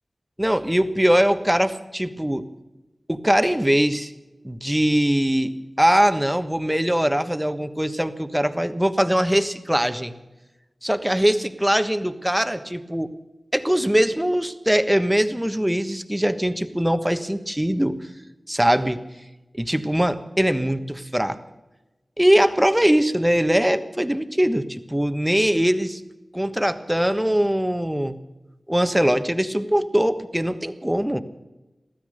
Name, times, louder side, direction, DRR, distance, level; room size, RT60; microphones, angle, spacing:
voice 1, 0.4-2.5 3.1-4.1 4.4-10.1 10.8-13.1 13.5-18.1 18.5-19.0 19.6-21.4 22.2-26.0 26.3-28.2 28.7-31.2, equal, 10° right, 10 dB, 1.3 m, -21 dB
15.5 x 13.5 x 6.6 m, 1.0 s
wide cardioid pair, 50°, 0 cm